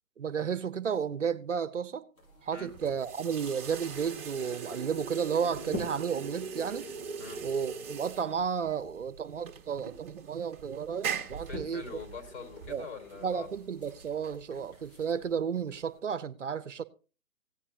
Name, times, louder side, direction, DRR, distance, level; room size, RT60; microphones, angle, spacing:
voice 1, 0.2-2.1 2.4-6.9 7.4-11.8 12.7-12.9 13.2-16.8, right 7 dB, 60° right, 0.7 m, -33 dB
sound 1, 2.1-16.0, left 1 dB, 85° left, 7.4 m, -49 dB
sound 2, 2.7-15.1, right 6 dB, 20° right, 1.4 m, -41 dB
voice 2, 11.3-13.5, left 4 dB, 50° left, 4.7 m, -43 dB
16.5 x 9.7 x 2.8 m
figure-of-eight pair, 135°, 42 cm